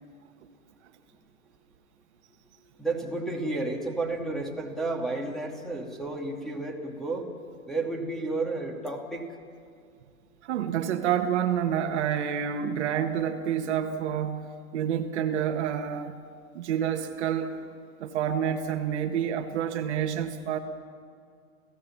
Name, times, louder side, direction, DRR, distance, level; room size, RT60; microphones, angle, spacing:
voice 1, 2.8-7.3 7.7-9.3, right 2 dB, ahead, 2 dB, 2.5 m, -32 dB
voice 2, 10.4-14.5 14.7-16.2 16.5-17.6 18.0-20.6, right 9 dB, 55° right, 6 dB, 1.7 m, -28 dB
30.0 x 16.0 x 7.3 m, 2.3 s
hypercardioid pair, 125°, 42 cm